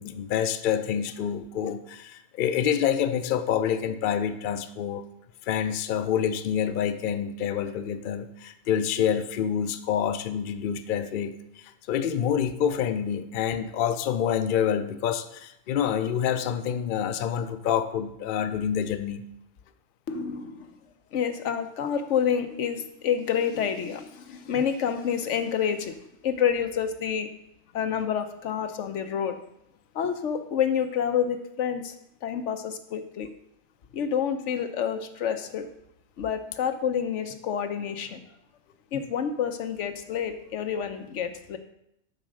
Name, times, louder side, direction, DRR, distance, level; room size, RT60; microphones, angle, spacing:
voice 1, 0.0-5.1 5.4-19.2, left 8 dB, 55° left, 10 dB, 0.6 m, -27 dB
voice 2, 20.1-20.8 21.1-25.9 26.2-27.3 27.7-29.4 29.9-31.9 32.2-33.3 33.9-35.7 36.2-38.2 38.9-41.6, left 8 dB, 90° left, 8 dB, 1.1 m, -28 dB
7.5 x 5.0 x 6.3 m, 0.79 s
omnidirectional pair, 1.2 m